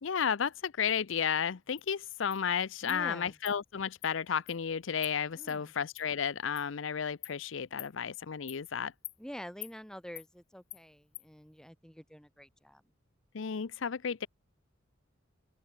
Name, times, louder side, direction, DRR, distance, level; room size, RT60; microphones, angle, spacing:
voice 1, 0.0-8.9 13.3-14.3, left 7 dB, 70° left, 0.6 m, -33 dB
Insect, 1.8-1.9 2.3-2.4 2.9-3.0 3.5-3.6 4.0-4.1 4.5-4.6 5.0-5.1 5.5-5.6 6.0-6.1 6.6-6.7 7.2-7.4 7.8-7.9 8.5-8.6 9.0-9.2 9.6-9.7 10.2-10.3 10.7-10.8 11.1-11.3, left 17 dB, 55° left, 2.1 m, -45 dB
voice 2, 2.8-3.4 5.3-5.7 9.2-12.8, equal, 5° left, 3.6 m, -47 dB
open air
head